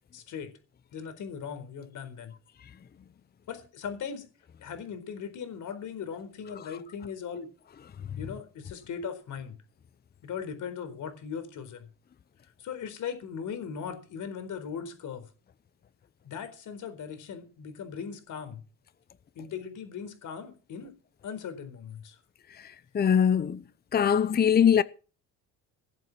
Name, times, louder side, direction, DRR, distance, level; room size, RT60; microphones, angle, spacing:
voice 1, 0.1-0.5 0.9-2.3 3.5-4.3 4.6-7.5 8.2-9.6 10.2-11.9 12.6-15.2 16.2-18.6 19.3-20.9 21.2-22.2, left 7 dB, 65° left, 4.3 m, -38 dB
voice 2, 22.9-23.6 23.9-24.8, left 8 dB, 30° left, 0.7 m, -21 dB
18.5 x 7.9 x 6.2 m
cardioid pair, 105°, 33 cm